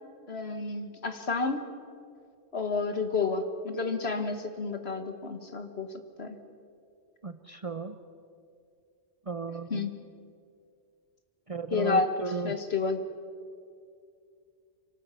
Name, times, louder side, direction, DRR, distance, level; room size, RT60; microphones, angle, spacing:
voice 1, 0.3-1.7 2.5-5.9 6.2-6.4 9.7-9.9 11.7-12.1 12.4-13.0, left 4 dB, 60° left, 8 dB, 1.8 m, -30 dB
voice 2, 7.2-8.0 9.3-9.9 11.5-12.6, right 4 dB, 35° right, 10 dB, 0.8 m, -35 dB
25.5 x 18.5 x 8.4 m, 2.3 s
omnidirectional pair, 1.2 m